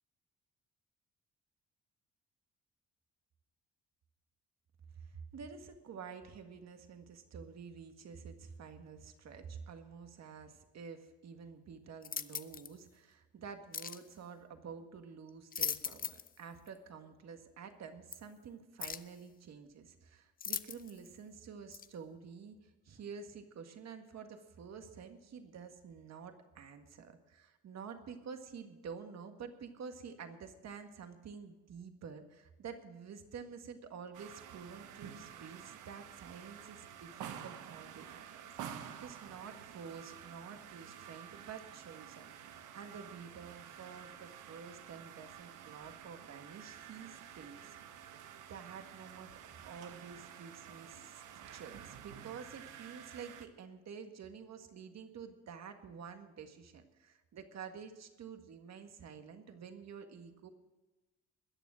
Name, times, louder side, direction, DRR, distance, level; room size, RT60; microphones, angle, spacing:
voice 1, 5.0-48.2 48.5-49.3 49.7-51.2 51.5-60.5, right 6 dB, 60° right, 6 dB, 1.8 m, -49 dB
sound 1, 12.0-12.7 13.7-14.0 15.3-16.3 16.7-16.8 18.1-18.2 18.8-19.1 20.4-21.1 21.7-21.9, left 7 dB, 30° left, 0.5 m, -39 dB
sound 2, 34.1-53.5, right 9 dB, 90° right, 1.2 m, -50 dB
21.0 x 7.1 x 6.3 m, 1.1 s
cardioid pair, 90°, 30 cm